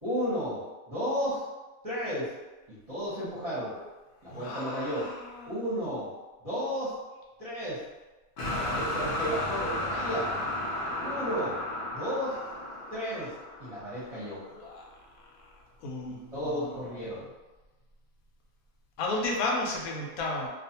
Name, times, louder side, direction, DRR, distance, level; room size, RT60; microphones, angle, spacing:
voice 1, 0.0-1.4 1.8-2.3 2.7-3.9 4.2-5.1 5.5-6.1 6.4-7.0 7.4-7.8 8.4-10.3 11.0-11.6 11.9-12.4 12.9-13.3 13.6-14.4 16.1-17.2, equal, 30° right, -11 dB, 0.7 m, -33 dB
voice 2, 4.3-5.6 8.6-9.4 14.5-14.8 15.8-16.7 19.0-20.5, left 2 dB, 85° left, -1 dB, 1.1 m, -34 dB
sound 1, 8.4-14.4, left 1 dB, 60° left, 0.5 m, -34 dB
2.5 x 2.3 x 2.7 m, 1.2 s
omnidirectional pair, 1.5 m